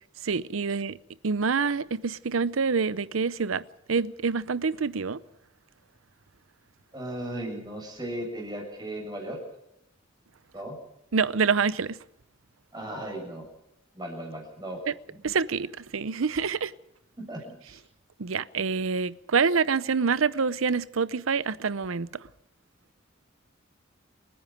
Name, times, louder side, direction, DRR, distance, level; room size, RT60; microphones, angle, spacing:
voice 1, 0.2-1.0 1.2-5.2 11.1-12.0 15.2-16.7 18.2-22.2, right 5 dB, 85° right, 0.7 m, -26 dB
voice 2, 6.9-9.4 10.5-10.8 12.7-13.4 13.9-14.8 15.1-15.2 17.2-17.8, right 1 dB, 20° right, 7.5 m, -36 dB
29.5 x 10.5 x 9.2 m
head